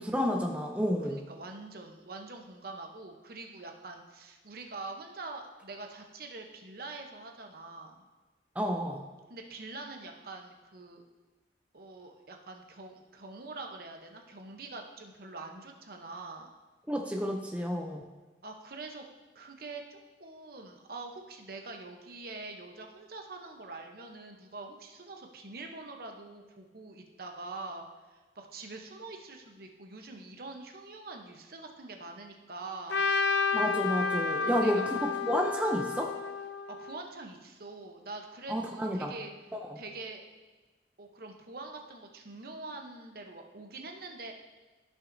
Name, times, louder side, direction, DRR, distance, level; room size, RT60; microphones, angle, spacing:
voice 1, 0.0-1.2 8.6-9.0 16.9-18.0 33.5-34.8 35.2-36.1 38.5-39.1 39.6-39.7, equal, 10° right, 1 dB, 0.5 m, -30 dB
voice 2, 1.0-8.0 9.3-11.0 11.7-16.5 18.4-19.1 19.3-33.1 34.4-34.8 36.7-39.3 39.8-40.2 41.0-44.3, right 3 dB, 55° right, 3 dB, 0.9 m, -44 dB
Trumpet, 32.9-37.1, left 4 dB, 70° left, 0.5 m, -31 dB
14.0 x 5.9 x 2.7 m, 1.2 s
head